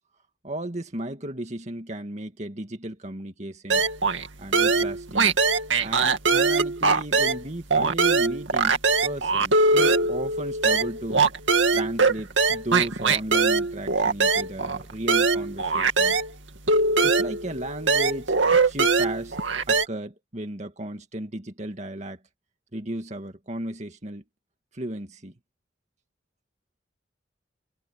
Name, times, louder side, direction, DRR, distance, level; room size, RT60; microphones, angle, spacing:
voice 1, 0.4-3.9 4.4-5.4 5.8-11.2 11.7-16.2 17.0-18.3 18.6-19.4 19.7-22.2 22.7-24.2 24.7-25.3, right 1 dB, 40° right, 2.1 m, -35 dB
sound 1, 3.7-4.3 4.5-7.4 7.7-16.3 16.7-19.9, right 4 dB, 85° right, 2.3 m, -22 dB
head